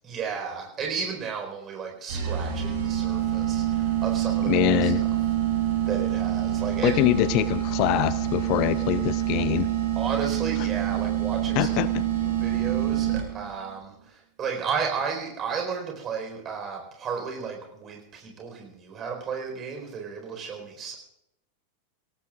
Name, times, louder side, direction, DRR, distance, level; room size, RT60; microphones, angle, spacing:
voice 1, 0.0-5.1 5.8-7.2 10.0-11.8 12.2-21.0, right 6 dB, 25° right, 2 dB, 4.5 m, -33 dB
sound 1, 2.1-13.5, right 11 dB, 60° right, 6.5 m, -26 dB
voice 2, 4.5-5.0 6.8-9.7 11.6-11.9, left 15 dB, 40° left, 16 dB, 0.5 m, -24 dB
24.5 x 18.0 x 2.5 m, 0.82 s
figure-of-eight pair, 90°, 0 cm